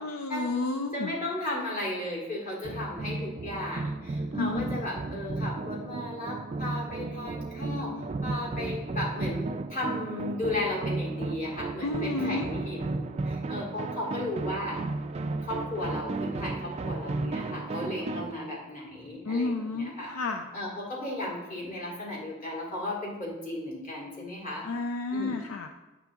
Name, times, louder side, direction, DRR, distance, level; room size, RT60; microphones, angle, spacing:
voice 1, 0.0-1.1 4.3-4.8 11.8-12.5 19.2-20.5 24.6-25.7, left 3 dB, 65° left, 5 dB, 0.4 m, -31 dB
voice 2, 0.9-7.9 8.2-14.8 15.4-20.1 20.5-24.7 25.1-25.4, left 1 dB, 35° left, -4 dB, 2.1 m, -35 dB
sound 1, 2.6-18.3, right 3 dB, 30° right, 0.3 m, -34 dB
8.6 x 6.8 x 3.6 m, 1.1 s
head